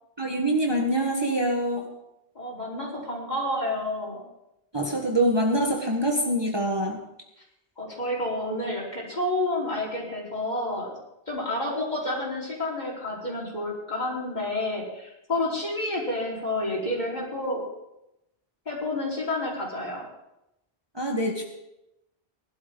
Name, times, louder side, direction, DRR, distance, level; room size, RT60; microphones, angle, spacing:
voice 1, 0.2-1.9 4.7-7.0 20.9-21.4, right 1 dB, 25° right, 0 dB, 1.5 m, -25 dB
voice 2, 2.3-4.2 7.8-10.9 11.3-17.6 18.7-20.1, left 1 dB, 45° left, -5 dB, 4.6 m, -29 dB
19.5 x 12.0 x 3.9 m, 0.88 s
omnidirectional pair, 1.1 m